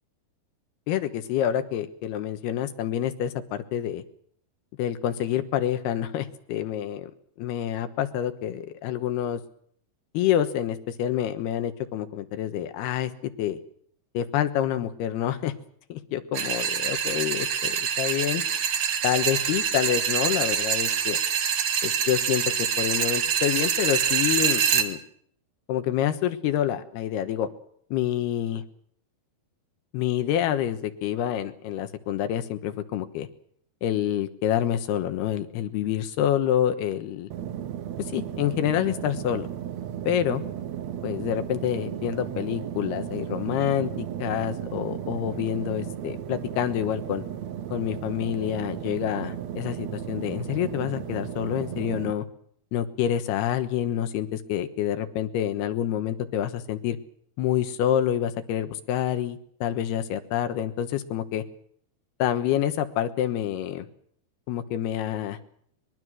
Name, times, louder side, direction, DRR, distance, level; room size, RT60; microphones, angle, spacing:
voice 1, 0.9-4.0 4.8-7.1 7.4-9.4 10.1-13.1 13.4-13.6 14.1-15.5 15.9-18.4 19.0-21.2 21.8-25.0 25.7-27.5 27.9-28.6 29.9-33.3 33.8-37.3 38.0-39.5 40.1-40.4 41.0-47.3 47.7-52.2 52.7-57.0 57.4-61.4 62.2-63.9 64.5-65.4, left 11 dB, 85° left, 9 dB, 3.3 m, -27 dB
sound 1, 16.3-24.9, right 8 dB, 55° right, 2.1 m, -25 dB
sound 2, 37.3-52.1, right 10 dB, 70° right, 1.7 m, -35 dB
23.5 x 21.5 x 6.3 m, 0.65 s
omnidirectional pair, 4.5 m